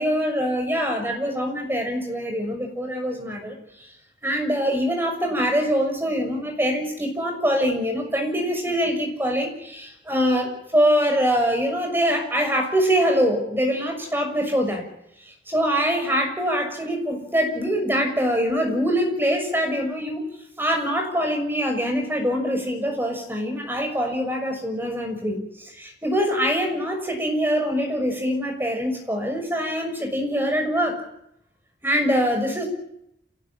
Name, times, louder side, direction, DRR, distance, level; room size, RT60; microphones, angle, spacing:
voice 1, 0.0-3.9 4.2-14.8 15.5-20.2 20.6-31.0 31.8-32.7, equal, 10° right, 4 dB, 6.4 m, -24 dB
27.5 x 19.0 x 8.8 m, 0.77 s
head